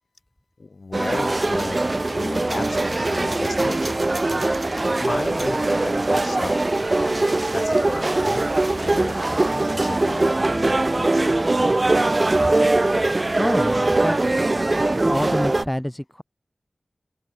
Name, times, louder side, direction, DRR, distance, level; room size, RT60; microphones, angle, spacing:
voice 1, 0.6-4.0 5.0-11.9, left 3 dB, 65° left, 2.3 m, -35 dB
sound 1, 0.9-15.7, right 2 dB, 40° right, 1.0 m, -21 dB
voice 2, 13.4-16.2, equal, 5° left, 2.1 m, -28 dB
open air
wide cardioid pair, 60°, 0 cm